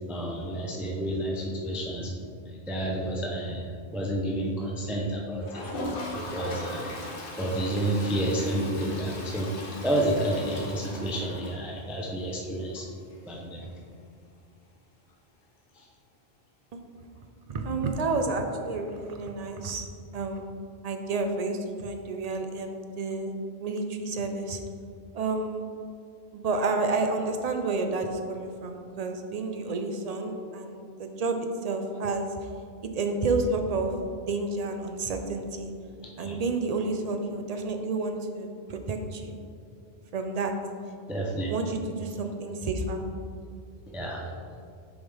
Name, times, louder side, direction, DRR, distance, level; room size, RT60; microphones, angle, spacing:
voice 1, 0.1-2.1 2.5-5.7 6.1-7.1 7.4-12.9 13.2-13.7 15.8-15.9 36.2-36.4 41.1-41.5 43.9-44.4, right 1 dB, ahead, -2 dB, 0.5 m, -30 dB
Toilet flush, 5.4-12.1 12.5-12.6 12.8-12.9 13.1-13.2 15.8-15.9 17.2-17.3, left 1 dB, 55° left, 1.1 m, -38 dB
voice 2, 17.5-19.9 20.1-20.5 20.8-23.3 23.6-24.6 25.1-25.6 26.3-32.3 32.9-35.7 36.2-39.3 40.1-40.5 41.5-43.0, right 3 dB, 45° right, 5 dB, 0.6 m, -30 dB
7.1 x 5.4 x 3.4 m, 2.3 s
omnidirectional pair, 1.1 m